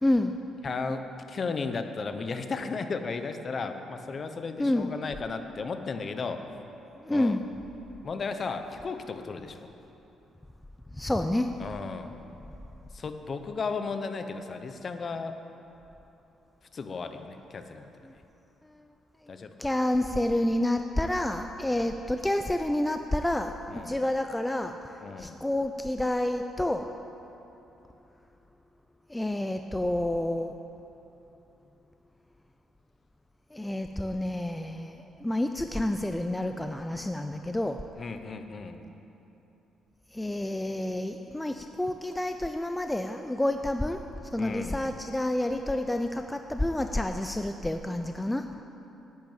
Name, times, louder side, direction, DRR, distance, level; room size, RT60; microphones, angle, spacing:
voice 1, 0.0-0.3 4.6-4.9 7.0-7.4 10.9-11.5 18.0-18.1 19.6-26.9 29.1-30.5 33.5-35.0 35.2-37.8 40.1-44.0 44.3-48.5, left 1 dB, 10° left, 6 dB, 0.4 m, -29 dB
voice 2, 0.6-6.5 7.1-7.4 8.0-9.7 11.6-12.1 12.9-15.4 16.7-17.9 19.3-19.5 21.7-21.8 23.7-24.0 25.0-25.4 38.0-38.8 44.4-44.8, left 4 dB, 40° left, 8 dB, 0.9 m, -35 dB
10.5 x 9.2 x 8.9 m, 3.0 s
cardioid pair, 120°, 0 cm